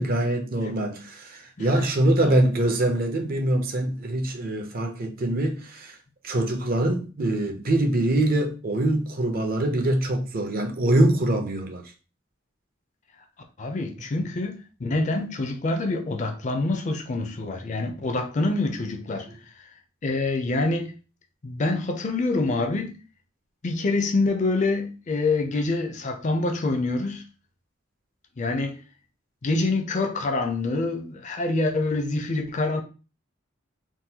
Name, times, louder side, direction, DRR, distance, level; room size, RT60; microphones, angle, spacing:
voice 1, 0.0-6.0 6.2-11.9 14.1-14.3, right 1 dB, 45° right, 0.5 m, -24 dB
voice 2, 1.6-1.9 2.2-2.5 13.6-19.3 20.0-20.9 21.4-22.9 23.6-27.2 28.4-28.8 29.4-32.8, left 2 dB, 35° left, 0.4 m, -26 dB
3.7 x 2.2 x 2.8 m
head